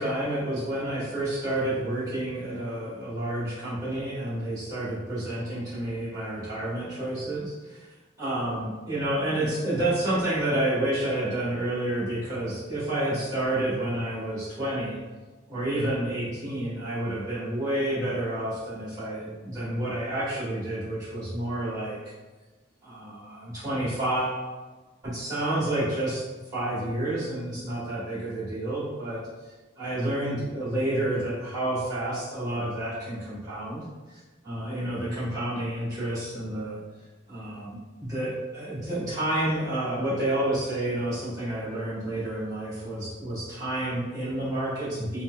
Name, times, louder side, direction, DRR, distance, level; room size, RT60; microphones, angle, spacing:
voice 1, 0.0-7.8 8.2-15.0 15.5-22.0 22.8-24.4 25.0-26.3 26.5-29.2 29.8-33.8 34.1-36.8 37.3-45.2, right 1 dB, 20° right, -11 dB, 1.2 m, -29 dB
4.2 x 2.1 x 2.2 m, 1.3 s
head